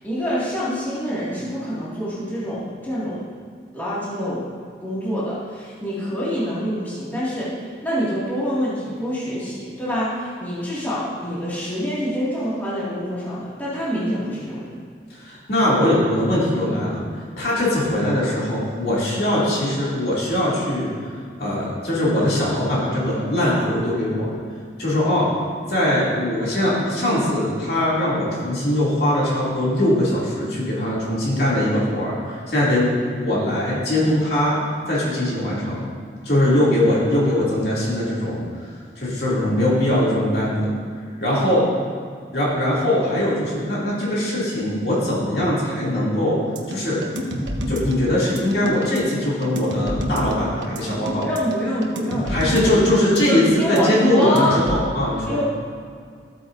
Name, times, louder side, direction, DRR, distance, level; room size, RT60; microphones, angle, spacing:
voice 1, 0.0-3.3 3.7-4.4 4.8-14.7 41.2-41.5 51.2-52.7 53.2-54.6 55.2-55.4, equal, 10° left, -10 dB, 2.2 m, -26 dB
voice 2, 15.1-17.0 17.4-20.9 21.4-24.3 24.8-25.3 25.7-34.6 34.9-35.9 36.2-38.4 39.0-40.7 41.2-41.6 42.3-46.4 46.7-47.0 47.7-51.3 52.3-55.4, left 1 dB, 60° left, -7 dB, 2.8 m, -21 dB
sound 1, 46.6-54.7, equal, 85° right, 1.2 m, -28 dB
14.0 x 8.6 x 2.7 m, 2.1 s
head